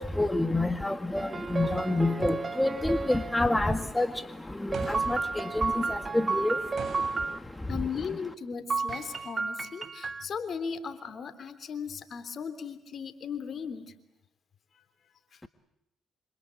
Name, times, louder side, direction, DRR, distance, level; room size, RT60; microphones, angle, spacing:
voice 1, 0.2-1.3 1.5-4.1 4.9-5.0 5.6-5.7 6.1-6.5, left 2 dB, 10° left, 9 dB, 1.8 m, -26 dB
sound 1, 1.2-3.3 4.7-7.4 8.7-10.2, right 4 dB, 35° right, 1.5 m, -32 dB
voice 2, 1.9-2.2 7.7-13.9, left 6 dB, 55° left, 10 dB, 3.3 m, -37 dB
sound 2, 4.7-5.6 6.8-7.5 8.9-9.3, right 6 dB, 55° right, 7.2 m, -43 dB
27.0 x 26.0 x 8.5 m, 0.87 s
supercardioid pair, 60°, 0 cm